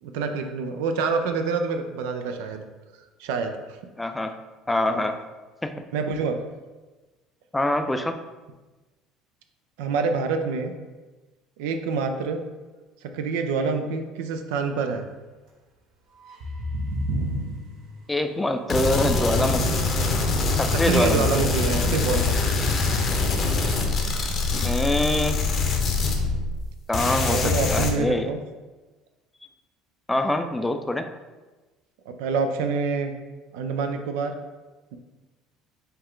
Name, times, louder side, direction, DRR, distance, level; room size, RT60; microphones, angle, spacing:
voice 1, 0.0-2.6 3.2-3.5 4.9-5.1 5.9-6.4 9.8-10.7 11.6-12.4 13.0-15.1 20.8-22.5 27.0-28.4 32.1-33.1 33.5-34.3, right 5 dB, 85° right, 6 dB, 0.4 m, -26 dB
voice 2, 4.0-4.4 4.7-5.2 5.6-5.7 7.5-8.2 18.1-19.8 20.5-21.3 24.6-25.4 26.9-28.3 30.1-31.1, left 1 dB, 10° left, 7 dB, 0.3 m, -24 dB
sound 1, 16.2-19.5 19.9-22.2 22.5-22.7 23.0-24.7, right 1 dB, 65° right, 0.8 m, -35 dB
sound 2, 18.7-26.7 26.9-27.9, left 3 dB, 45° left, 0.7 m, -24 dB
5.3 x 2.4 x 3.7 m, 1.2 s
supercardioid pair, 105°, 0 cm